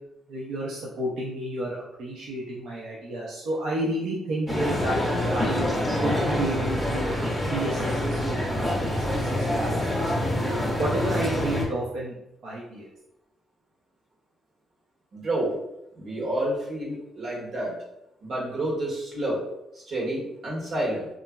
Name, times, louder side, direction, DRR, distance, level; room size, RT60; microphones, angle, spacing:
voice 1, 0.3-5.0 5.3-5.7 6.0-7.1 7.5-8.8 9.2-10.0 10.8-12.1 12.4-12.9, right 1 dB, 75° right, -5 dB, 0.5 m, -31 dB
sound 1, 4.5-11.7, left 1 dB, 5° right, 0.7 m, -26 dB
voice 2, 15.1-15.6 16.0-17.7 18.2-19.4 19.7-21.1, right 1 dB, 55° right, -4 dB, 1.0 m, -29 dB
2.9 x 2.4 x 2.2 m, 0.86 s
cardioid pair, 90°, 0 cm